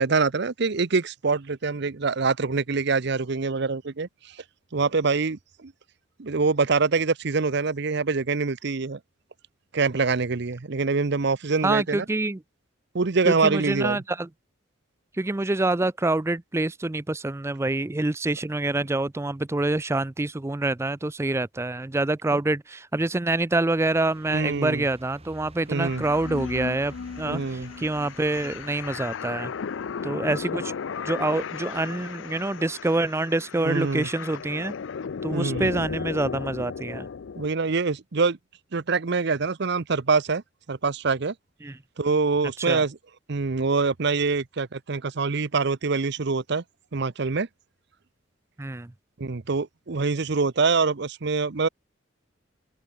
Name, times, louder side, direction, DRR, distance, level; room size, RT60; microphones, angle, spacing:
voice 1, 0.0-4.4 4.7-5.7 6.2-9.0 9.7-12.0 12.9-14.0 22.3-22.4 24.3-24.9 25.7-26.0 27.2-27.7 33.6-34.1 35.3-35.7 37.4-38.4 38.7-40.4 40.7-41.3 42.0-43.0 43.3-46.6 46.9-47.5 49.2-51.7, right 4 dB, 60° right, 0.7 m, -25 dB
voice 2, 11.6-12.4 13.3-14.3 15.2-29.5 30.0-30.7 31.0-34.7 35.2-37.1 41.6-41.8 42.7-42.8 48.6-48.9, right 2 dB, 15° right, 0.4 m, -26 dB
sound 1, 23.8-29.0, right 2 dB, 30° right, 5.0 m, -51 dB
sound 2, 25.7-37.5, left 6 dB, 70° left, 0.4 m, -35 dB
open air
head